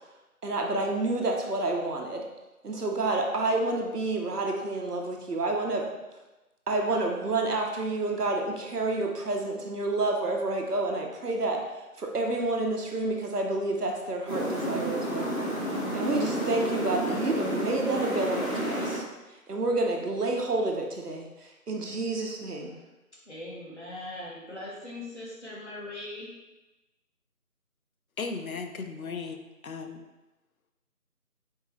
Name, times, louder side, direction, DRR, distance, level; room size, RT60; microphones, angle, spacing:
voice 1, 0.4-2.2 2.6-5.9 6.7-15.3 15.9-19.0 19.3-22.8, right 2 dB, 85° right, 1 dB, 0.9 m, -29 dB
sound 1, 14.3-19.0, right 1 dB, 20° left, 1.5 m, -31 dB
voice 2, 23.3-26.3, left 1 dB, 45° left, -5 dB, 1.1 m, -40 dB
voice 3, 28.2-30.0, left 4 dB, 65° left, 6 dB, 0.5 m, -36 dB
4.4 x 2.9 x 3.0 m, 1.1 s
figure-of-eight pair, 175°, 45 cm